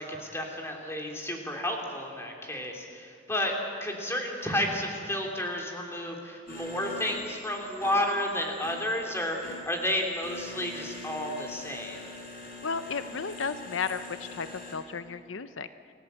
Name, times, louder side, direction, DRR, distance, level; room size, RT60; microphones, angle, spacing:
voice 1, 0.0-3.5 3.8-12.0, left 1 dB, 15° left, 1 dB, 3.0 m, -31 dB
sound 1, 6.5-14.8, left 2 dB, 50° left, 4.5 m, -44 dB
voice 2, 12.6-14.5 14.7-15.7, left 5 dB, 80° left, 12 dB, 0.7 m, -33 dB
29.0 x 15.5 x 8.1 m, 2.4 s
head